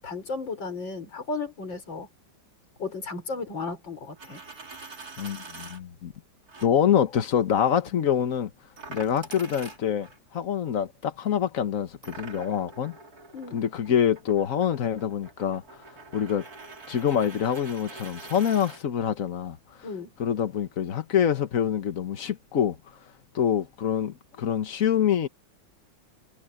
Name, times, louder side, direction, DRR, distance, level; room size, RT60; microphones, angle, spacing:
voice 1, 0.0-2.1 2.8-4.4 13.3-13.6 19.8-20.1, left 4 dB, 70° left, 5.6 m, -34 dB
Coin (dropping), 4.1-5.8 6.5-6.7 8.8-10.2 12.0-18.8, right 3 dB, 50° right, 3.7 m, -44 dB
voice 2, 5.2-6.1 6.6-8.5 8.9-10.1 10.3-13.0 13.5-15.6 16.1-16.5 16.9-19.6 20.2-22.8 23.3-25.3, left 9 dB, 50° left, 1.4 m, -25 dB
omnidirectional pair, 2.1 m